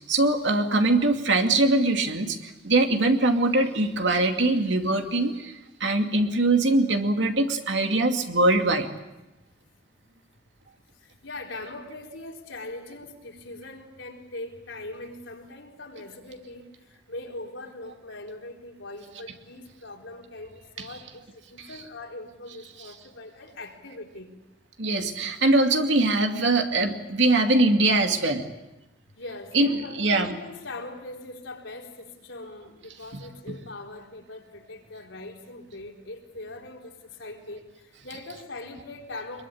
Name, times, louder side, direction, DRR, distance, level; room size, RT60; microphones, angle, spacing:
voice 1, 0.1-8.9 24.8-28.5 29.5-30.4, right 2 dB, 75° right, 4 dB, 2.6 m, -22 dB
voice 2, 10.9-24.3 29.2-39.5, left 2 dB, 85° left, 1 dB, 4.2 m, -41 dB
24.0 x 22.5 x 8.8 m, 0.99 s
head